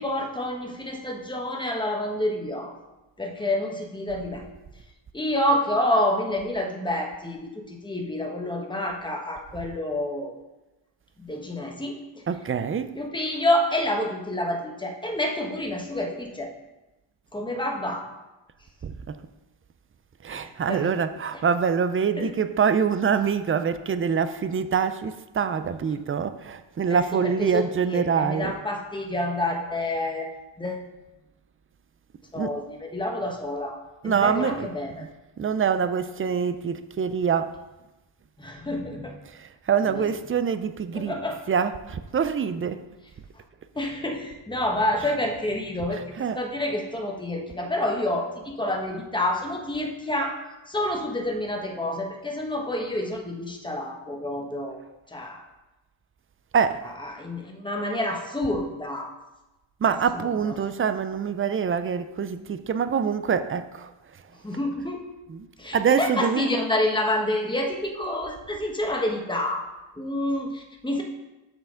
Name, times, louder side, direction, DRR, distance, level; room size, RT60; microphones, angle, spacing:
voice 1, 0.0-2.7 3.2-4.4 5.1-10.3 11.2-12.2 12.9-16.5 17.3-18.0 20.3-20.9 22.2-22.3 26.9-30.3 30.6-30.9 32.3-33.8 34.0-35.0 38.4-39.2 39.8-40.0 40.9-41.4 43.7-46.0 46.3-50.4 50.7-54.8 55.1-55.4 57.0-59.1 59.9-60.7 64.4-65.0 65.6-69.6 70.0-71.0, left 1 dB, 10° left, 1.1 m, -28 dB
voice 2, 12.3-12.9 18.8-19.2 20.2-28.6 32.4-32.6 34.0-34.7 35.0-35.1 35.4-37.6 39.7-41.2 41.5-42.8 45.0-45.1 45.9-46.4 56.5-56.8 59.8-63.9 65.3-65.5 65.7-66.6, right 6 dB, 30° right, 0.3 m, -25 dB
7.5 x 5.5 x 3.7 m
cardioid pair, 85°, 50 cm